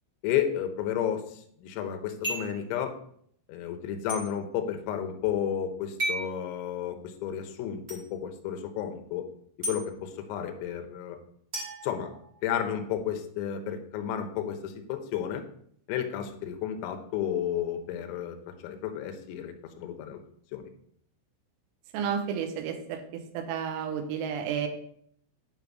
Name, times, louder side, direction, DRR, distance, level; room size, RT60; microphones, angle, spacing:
voice 1, 0.2-2.9 3.5-9.3 9.7-11.2 11.8-12.1 12.4-15.4 15.9-18.4 18.6-20.2 20.5-20.7, left 9 dB, 85° left, 6 dB, 3.5 m, -32 dB
sound 1, 2.2-2.6 4.1-4.2 6.0-6.3 7.9-8.0 9.6-9.8 11.5-12.6, right 1 dB, 20° right, 1.4 m, -33 dB
voice 2, 21.9-24.7, right 7 dB, 85° right, 5 dB, 3.5 m, -32 dB
10.5 x 4.0 x 4.6 m, 0.66 s
omnidirectional pair, 5.9 m